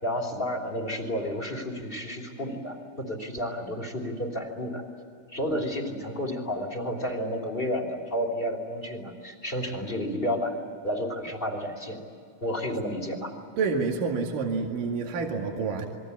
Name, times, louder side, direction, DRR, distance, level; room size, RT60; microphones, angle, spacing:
voice 1, 0.0-4.8 5.3-10.6 10.8-12.0 12.4-13.3, equal, 15° left, 4 dB, 2.8 m, -31 dB
voice 2, 13.6-15.9, right 4 dB, 65° right, 2 dB, 3.7 m, -28 dB
28.5 x 22.5 x 8.5 m, 2.3 s
omnidirectional pair, 4.2 m